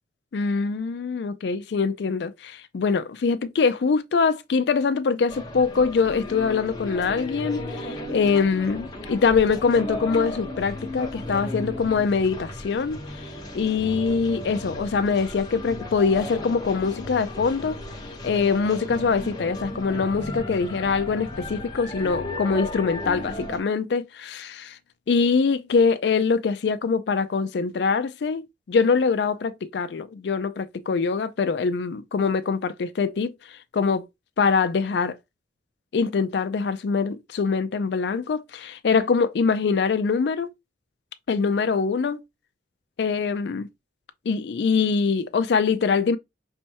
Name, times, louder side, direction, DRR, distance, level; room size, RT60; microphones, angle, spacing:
voice 1, 0.3-17.8 18.2-24.8 25.1-34.1 34.4-35.2 35.9-40.5 41.3-42.2 43.0-43.7 44.3-46.2, left 5 dB, 65° left, 0.4 m, -23 dB
sound 1, 5.3-23.6, left 1 dB, 20° left, 0.9 m, -35 dB
5.2 x 3.3 x 2.8 m
head